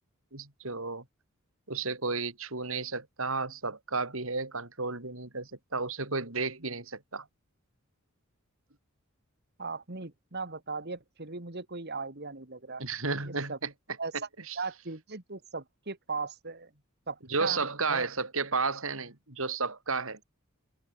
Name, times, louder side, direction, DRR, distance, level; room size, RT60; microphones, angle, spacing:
voice 1, 0.3-1.0 1.7-7.3 12.8-13.7 14.1-14.6 17.3-20.2, right 4 dB, 70° right, 4.0 m, -33 dB
voice 2, 9.6-12.8 13.2-13.6 14.0-14.1 14.6-16.7 17.1-17.6 17.9-18.1, right 4 dB, 50° right, 2.3 m, -38 dB
open air
head